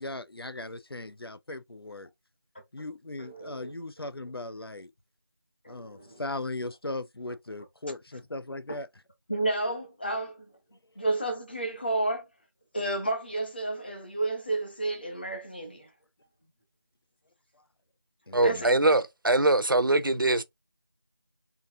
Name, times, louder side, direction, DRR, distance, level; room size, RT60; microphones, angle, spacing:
voice 1, 0.0-2.1 2.7-4.9 5.7-8.9 18.3-18.6, left 2 dB, 85° left, 0.6 m, -38 dB
voice 2, 3.2-3.7 5.6-6.2 9.3-10.4 11.0-12.2 12.7-15.9 18.4-18.7, right 2 dB, 25° left, 1.1 m, -31 dB
voice 3, 18.3-20.4, right 2 dB, 60° right, 0.6 m, -23 dB
3.9 x 2.8 x 3.6 m
figure-of-eight pair, 170°, 12 cm